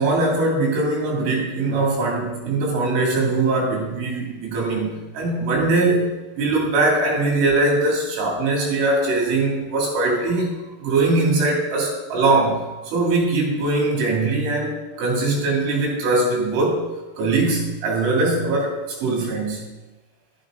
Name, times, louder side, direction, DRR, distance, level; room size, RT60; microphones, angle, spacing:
voice 1, 0.0-10.5 10.8-12.6 12.9-16.9 17.2-19.7, right 2 dB, 70° right, -2 dB, 5.4 m, -21 dB
11.5 x 11.0 x 3.9 m, 1.1 s
omnidirectional pair, 5.8 m